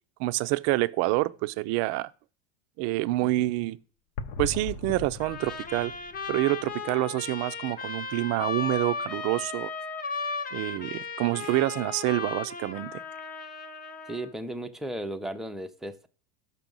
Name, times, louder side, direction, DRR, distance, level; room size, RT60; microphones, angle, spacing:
voice 1, 0.2-2.1 2.8-3.8 4.4-5.9 6.3-9.7 10.5-13.0, right 19 dB, 55° right, 0.5 m, -27 dB
sound 1, 4.2-7.2 7.4-7.6 8.2-8.3 12.8-12.9, left 4 dB, 65° left, 0.8 m, -39 dB
Trumpet, 5.2-14.3, left 4 dB, 25° left, 0.9 m, -36 dB
voice 2, 14.1-16.1, right 1 dB, ahead, 0.5 m, -35 dB
6.0 x 5.7 x 5.3 m
supercardioid pair, 110°, 32 cm